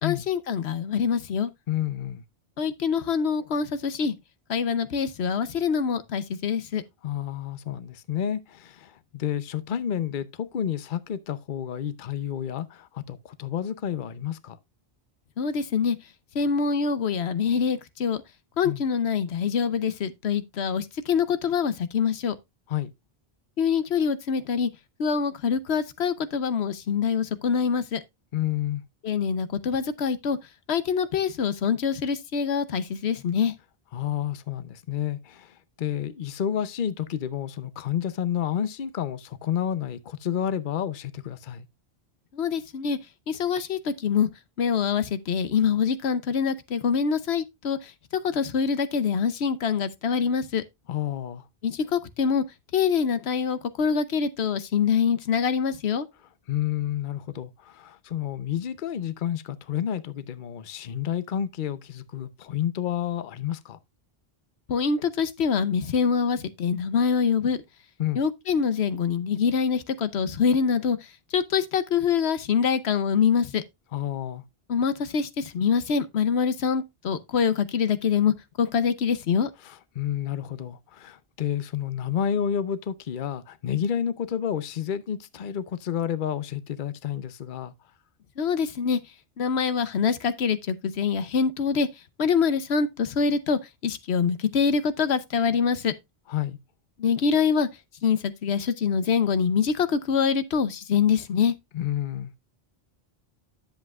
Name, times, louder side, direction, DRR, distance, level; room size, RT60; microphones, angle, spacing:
voice 1, 0.0-1.5 2.6-4.1 4.5-6.8 15.4-16.0 16.3-18.2 18.6-22.4 23.6-24.7 25.0-28.0 29.0-30.4 30.7-33.5 42.3-43.0 43.3-44.3 44.6-47.9 48.2-50.6 51.6-52.4 52.7-56.1 64.7-67.6 68.1-71.0 71.3-73.6 74.7-79.5 88.4-89.0 89.4-91.9 92.2-95.9 97.0-97.7 98.0-101.5, left 6 dB, 85° left, 1.1 m, -25 dB
voice 2, 1.7-2.2 7.0-14.6 18.6-18.8 22.7-22.9 28.3-28.8 33.9-41.7 50.9-51.5 56.5-63.8 68.0-68.2 73.9-74.4 79.6-87.7 96.3-96.6 101.7-102.3, left 10 dB, 55° left, 0.8 m, -30 dB
10.5 x 7.6 x 2.4 m
omnidirectional pair, 1.1 m